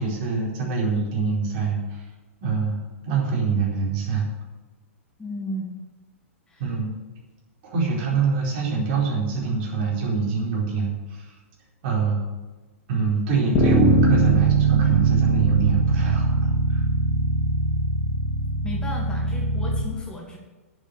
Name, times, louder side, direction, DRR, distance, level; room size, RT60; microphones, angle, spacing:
voice 1, 0.0-2.0 2.4-4.3 6.6-7.0 7.6-11.3 11.8-12.2 12.9-16.8, right 5 dB, 45° right, -3 dB, 4.6 m, -25 dB
voice 2, 5.2-5.7 6.5-6.6 18.6-20.4, left 1 dB, 10° left, -1 dB, 1.9 m, -34 dB
Bass guitar, 13.5-19.8, right 2 dB, 40° left, 3.1 m, -21 dB
10.0 x 7.5 x 8.1 m, 1.2 s
figure-of-eight pair, 110°, 8 cm